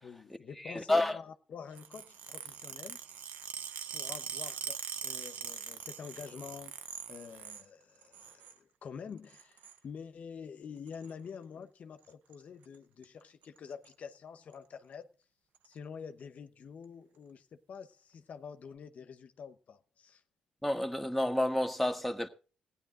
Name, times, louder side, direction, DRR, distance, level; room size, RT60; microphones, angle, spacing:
voice 1, 0.0-3.0 3.9-15.1 15.6-20.2, left 6 dB, 60° left, 0.9 m, -47 dB
voice 2, 0.6-1.2 20.6-22.3, left 1 dB, ahead, 1.4 m, -30 dB
sound 1, 1.7-7.7 8.0-8.6 9.3-9.8 10.9-11.1 12.1-12.3 12.6-12.8 13.0-13.1 13.4-13.9 14.5-14.6 15.5-15.7, right 8 dB, 85° right, 0.9 m, -42 dB
15.5 x 10.0 x 3.8 m
supercardioid pair, 65°, 3 cm